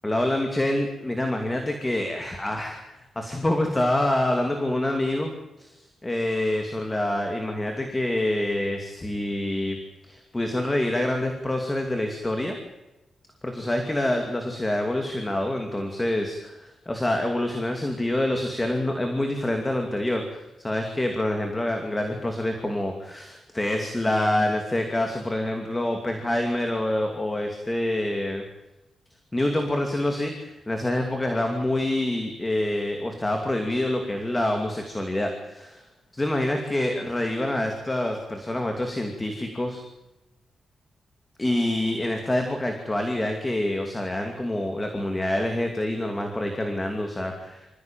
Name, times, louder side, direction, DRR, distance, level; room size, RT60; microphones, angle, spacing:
voice 1, 0.0-5.3 5.6-9.8 10.1-12.5 13.4-28.4 29.3-35.8 36.1-39.8 41.4-47.7, left 1 dB, 10° left, 3 dB, 2.6 m, -26 dB
26.0 x 15.5 x 9.1 m, 0.99 s
wide cardioid pair, 170°, 0 cm